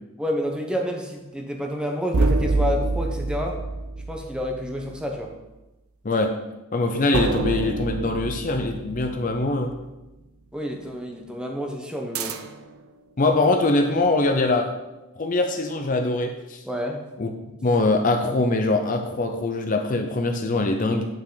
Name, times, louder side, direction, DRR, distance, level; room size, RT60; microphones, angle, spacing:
voice 1, 0.2-3.6 4.1-5.3 10.5-12.4 16.6-17.1, equal, 5° right, 1 dB, 0.9 m, -29 dB
sound 1, 2.1-4.9 7.1-9.8 12.2-12.8, right 3 dB, 85° right, 0.6 m, -26 dB
voice 2, 6.0-6.4 6.7-9.7 13.2-14.7 15.2-16.6 17.2-17.3 17.6-21.1, left 2 dB, 40° left, 4 dB, 0.6 m, -23 dB
8.9 x 5.9 x 3.9 m, 1.0 s
head